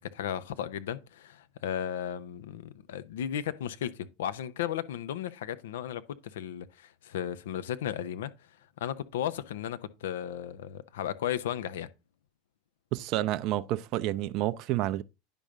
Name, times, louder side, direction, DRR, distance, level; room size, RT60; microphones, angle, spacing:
voice 1, 0.1-8.3 8.8-11.9, left 10 dB, 70° left, 0.7 m, -35 dB
voice 2, 12.9-15.0, right 14 dB, 50° right, 0.4 m, -29 dB
10.0 x 5.4 x 3.7 m
hypercardioid pair, 85°, 0 cm